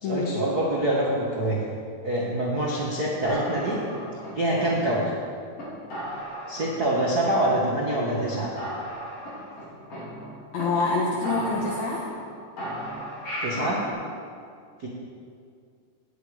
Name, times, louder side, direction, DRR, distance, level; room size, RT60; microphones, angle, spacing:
voice 1, 0.0-1.6 2.0-3.8 4.3-5.1 6.5-8.5 13.4-13.8 14.8-14.9, right 1 dB, 85° right, -4 dB, 0.8 m, -25 dB
sound 1, 3.2-5.2 5.6-5.7 5.9-6.9 7.2-7.9 8.2-8.3 8.6-10.6 10.9-11.0 11.2-12.3 12.6-13.9, equal, 35° left, 4.7 m, -36 dB
voice 2, 10.5-12.1, left 3 dB, 60° left, -3 dB, 2.1 m, -26 dB
17.5 x 9.4 x 5.0 m, 2.3 s
omnidirectional pair, 4.6 m